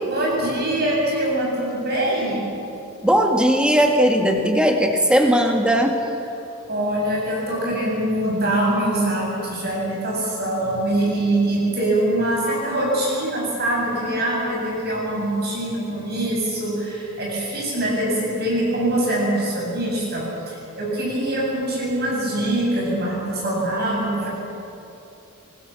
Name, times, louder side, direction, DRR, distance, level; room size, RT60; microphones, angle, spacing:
voice 1, 0.1-2.4 6.7-24.3, right 1 dB, 45° right, -3 dB, 7.5 m, -23 dB
voice 2, 3.0-6.0, equal, 5° right, 2 dB, 2.0 m, -18 dB
25.5 x 20.0 x 7.2 m, 2.8 s
head